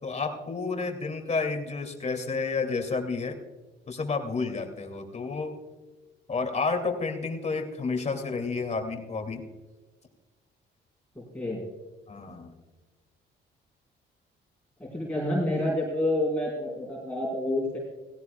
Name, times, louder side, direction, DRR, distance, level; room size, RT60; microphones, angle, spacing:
voice 1, 0.0-3.4 3.9-5.5 6.3-9.4 12.1-12.6, left 4 dB, 35° left, 4 dB, 2.6 m, -30 dB
voice 2, 11.1-11.6 14.8-17.8, left 1 dB, 5° left, -6 dB, 4.7 m, -28 dB
17.5 x 17.0 x 2.3 m, 1.2 s
cardioid pair, 90°, 20 cm